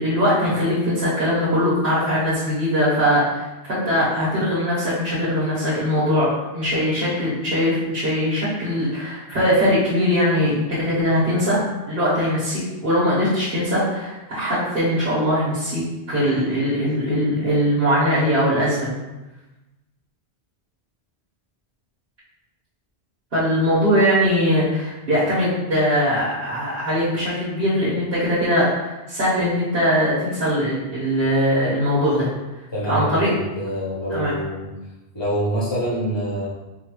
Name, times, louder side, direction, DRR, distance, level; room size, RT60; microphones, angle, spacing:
voice 1, 0.0-11.6 11.9-18.9 23.3-32.3 32.9-33.3 34.1-34.3, equal, 60° right, -12 dB, 1.5 m, -21 dB
voice 2, 32.7-34.7 35.1-36.5, right 1 dB, 25° left, -7 dB, 1.2 m, -25 dB
5.0 x 2.3 x 3.0 m, 1.1 s
omnidirectional pair, 1.1 m